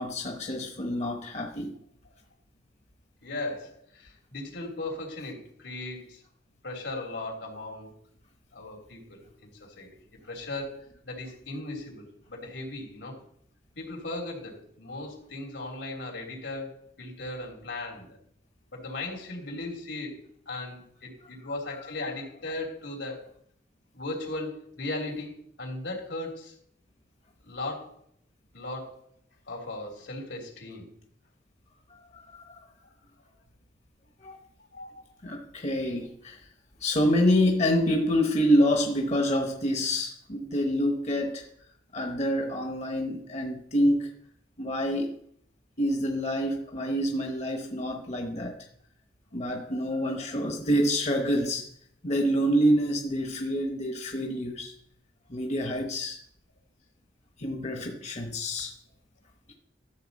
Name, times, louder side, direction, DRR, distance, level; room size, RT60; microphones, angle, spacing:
voice 1, 0.0-1.8 31.9-32.6 34.2-34.4 35.2-36.4 36.8-41.5 41.9-44.1 44.6-45.1 45.8-48.6 49.3-51.6 52.0-54.7 55.3-56.2 57.4-58.7, equal, 40° left, 1.0 m, -27 dB
voice 2, 3.2-6.2 6.6-7.9 8.5-9.9 10.2-13.2 13.7-18.2 18.7-23.3 23.9-26.5 27.4-28.0 28.5-29.1 29.5-30.9 32.8-32.9 34.7-35.0, left 2 dB, 85° left, 3.1 m, -37 dB
13.0 x 6.8 x 4.1 m
head